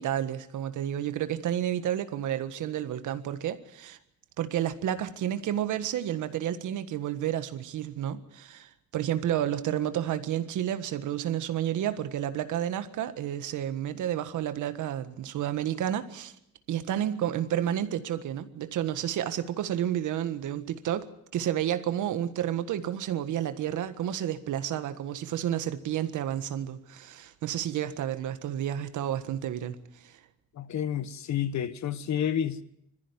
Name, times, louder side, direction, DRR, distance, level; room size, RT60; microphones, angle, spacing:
voice 1, 0.0-4.0 4.4-16.3 16.7-21.1 21.3-30.2, right 11 dB, 80° right, 1.6 m, -31 dB
voice 2, 30.5-32.6, left 9 dB, 65° left, 1.3 m, -30 dB
21.5 x 14.5 x 9.8 m
cardioid pair, 90°, 30 cm